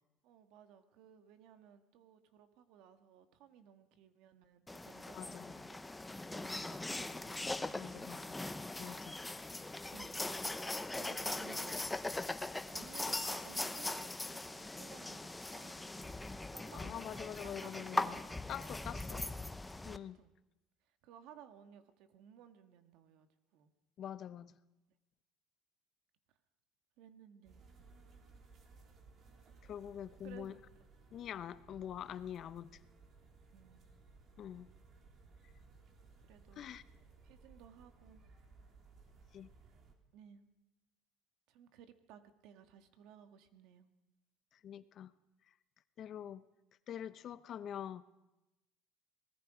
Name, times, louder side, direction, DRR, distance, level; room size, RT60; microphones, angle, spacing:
voice 1, 0.2-5.8 6.3-8.2 9.4-10.6 10.9-11.9 12.7-16.2 16.5-18.2 19.1-19.3 20.1-20.3 20.9-23.7 27.0-27.6 30.2-30.8 33.5-33.9 36.3-36.7 37.2-38.2 40.1-40.5 41.5-43.9, right 9 dB, 70° right, 8 dB, 1.8 m, -58 dB
sound 1, 4.7-20.0, left 2 dB, 10° left, 0.9 m, -41 dB
voice 2, 5.1-5.4 7.7-8.3 8.8-9.2 16.7-18.2 18.5-19.3 19.8-20.2 24.0-24.5 29.7-30.5 31.1-32.8 34.4-34.7 36.6-36.8 39.3-39.5 44.6-45.1 46.0-46.4 46.9-48.0, left 9 dB, 50° left, 14 dB, 0.9 m, -45 dB
sound 2, 27.4-39.9, right 4 dB, 45° right, 3.5 m, -61 dB
26.5 x 19.5 x 5.1 m, 0.99 s
supercardioid pair, 110°, 0 cm